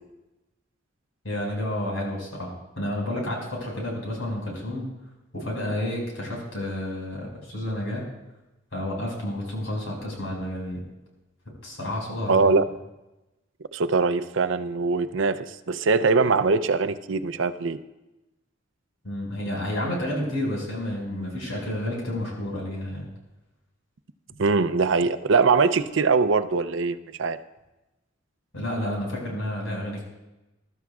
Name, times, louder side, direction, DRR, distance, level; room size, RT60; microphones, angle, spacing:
voice 1, 1.2-2.5 2.8-4.9 5.3-8.0 8.7-10.8 11.6-12.5 19.0-23.1 28.5-30.0, left 1 dB, 85° left, -2 dB, 5.4 m, -30 dB
voice 2, 12.3-12.6 13.7-17.8 24.4-27.4, right 4 dB, 70° right, 11 dB, 0.5 m, -22 dB
21.0 x 13.0 x 2.4 m, 1.0 s
head